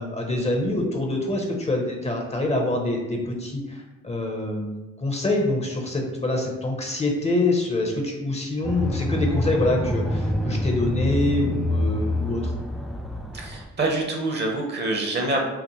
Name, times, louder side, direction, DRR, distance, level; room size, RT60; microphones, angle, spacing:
voice 1, 0.0-12.5, left 2 dB, 20° left, 1 dB, 0.7 m, -25 dB
sound 1, 8.6-13.7, left 1 dB, ahead, 0.3 m, -26 dB
voice 2, 13.3-15.4, right 2 dB, 35° right, 1 dB, 0.9 m, -26 dB
5.8 x 2.0 x 3.0 m, 1.1 s
cardioid pair, 90°, 30 cm